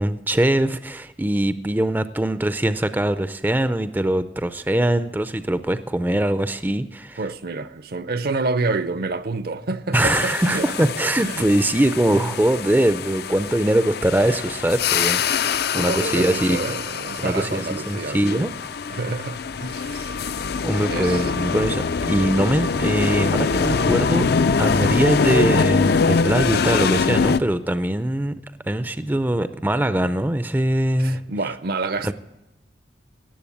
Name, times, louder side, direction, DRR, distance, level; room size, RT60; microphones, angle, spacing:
voice 1, 0.0-7.2 9.9-16.6 17.2-18.5 20.6-24.3 24.6-28.4 28.6-31.2 32.0-32.1, right 1 dB, 10° right, 0.4 m, -22 dB
voice 2, 7.2-10.9 11.2-11.5 12.1-12.3 15.7-18.5 18.9-20.1 20.9-21.3 31.0-32.1, right 3 dB, 55° right, 0.6 m, -28 dB
sound 1, 9.9-27.4, left 5 dB, 60° left, 0.4 m, -23 dB
17.5 x 7.7 x 8.5 m
head